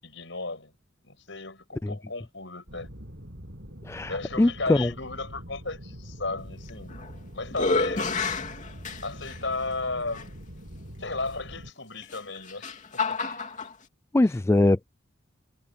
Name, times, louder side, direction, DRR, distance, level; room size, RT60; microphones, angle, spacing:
voice 1, 0.0-0.7 1.0-2.9 4.1-7.0 7.3-8.4 9.0-10.3 11.0-13.2 14.2-14.4, left 3 dB, 65° left, 7.6 m, -35 dB
sound 1, 2.7-11.7, equal, 60° right, 6.6 m, -44 dB
voice 2, 4.4-4.9 14.1-14.9, left 2 dB, 15° left, 0.3 m, -21 dB
sound 2, 6.7-7.1 7.5-9.4 10.1-10.2 12.0-13.7, left 3 dB, 40° left, 2.8 m, -29 dB
head